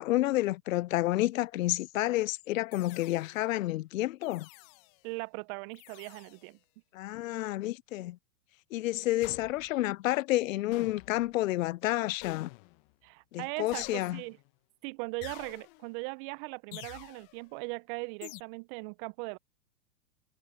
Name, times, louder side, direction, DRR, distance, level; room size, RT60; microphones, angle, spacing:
voice 1, 0.0-4.5 6.9-8.2 8.7-12.5 13.3-14.2, left 17 dB, 55° left, 0.6 m, -30 dB
sound 1, 2.7-3.5 4.2-5.0 5.7-6.5 9.2-9.9 10.7-11.4 12.2-12.9 13.7-14.5 15.2-16.0 16.7-17.4 18.2-18.4, left 29 dB, 35° left, 1.2 m, -48 dB
voice 2, 5.0-6.6 13.0-14.4 14.8-19.4, right 30 dB, 35° right, 0.8 m, -39 dB
hypercardioid pair, 115°, 47 cm